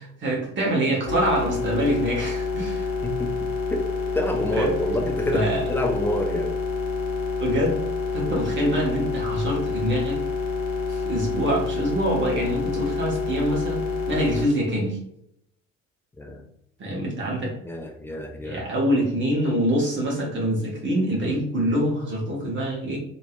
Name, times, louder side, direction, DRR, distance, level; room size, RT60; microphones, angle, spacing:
voice 1, 0.0-2.9 4.5-4.7 5.3-5.6 7.4-7.8 8.1-10.2 10.9-15.0 16.8-17.6 18.4-23.0, equal, 30° right, -3 dB, 1.3 m, -25 dB
sound 1, 1.0-14.5, left 4 dB, 55° left, 0.8 m, -28 dB
voice 2, 4.1-6.5 16.2-16.4 17.6-18.6, equal, 5° left, 3 dB, 0.3 m, -27 dB
3.0 x 2.8 x 2.3 m, 0.72 s
figure-of-eight pair, 60°, 38 cm